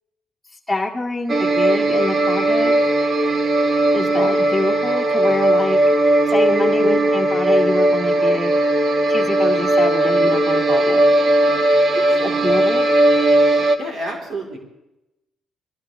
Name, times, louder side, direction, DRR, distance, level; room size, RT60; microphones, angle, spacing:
voice 1, 0.7-2.8 3.9-5.8 6.3-8.5 9.1-11.0 12.2-12.8, left 2 dB, 5° left, -4 dB, 2.0 m, -25 dB
sound 1, 1.3-13.8, right 1 dB, 45° right, 1.4 m, -17 dB
voice 2, 11.9-12.5 13.8-14.6, right 2 dB, 65° right, -1 dB, 4.1 m, -30 dB
23.0 x 16.0 x 3.5 m, 0.92 s
cardioid pair, 90°, 0 cm